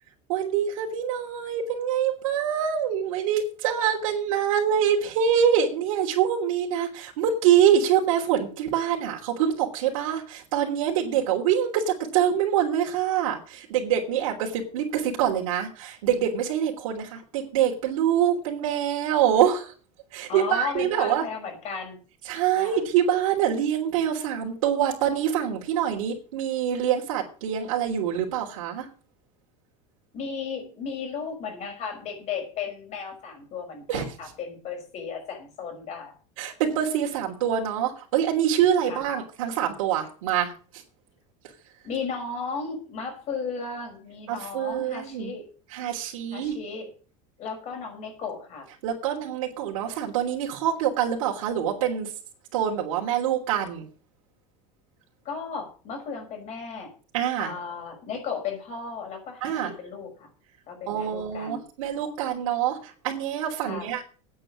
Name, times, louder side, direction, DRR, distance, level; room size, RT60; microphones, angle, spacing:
voice 1, 0.3-19.7 20.1-21.2 22.2-28.9 33.9-34.0 36.4-40.8 44.3-45.3 45.7-46.6 48.8-52.1 52.5-53.8 57.1-57.5 59.4-59.7 60.9-64.0, right 9 dB, 85° right, -3 dB, 3.2 m, -25 dB
voice 2, 20.3-22.0 22.6-22.8 30.1-36.1 38.8-39.1 41.8-45.5 46.3-46.9 47.4-48.7 55.2-56.9 57.4-60.3 60.7-61.6 63.7-63.9, left 5 dB, 40° left, 4 dB, 5.6 m, -35 dB
9.2 x 8.7 x 8.6 m, 0.40 s
supercardioid pair, 145°, 17 cm